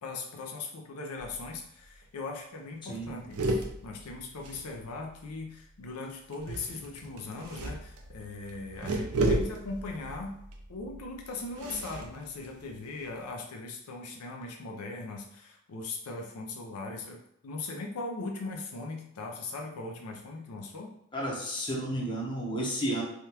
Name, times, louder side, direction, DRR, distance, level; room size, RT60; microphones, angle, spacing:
voice 1, 0.0-10.3 10.7-20.9, left 3 dB, 85° left, 1 dB, 0.5 m, -39 dB
sound 1, 1.2-1.6 1.9-2.0 2.3-2.5 2.9-5.2 6.3-13.2, right 1 dB, 85° right, 0.5 m, -35 dB
voice 2, 2.8-3.2 21.1-23.0, right 1 dB, 20° left, -2 dB, 0.7 m, -32 dB
3.5 x 2.3 x 2.8 m, 0.75 s
head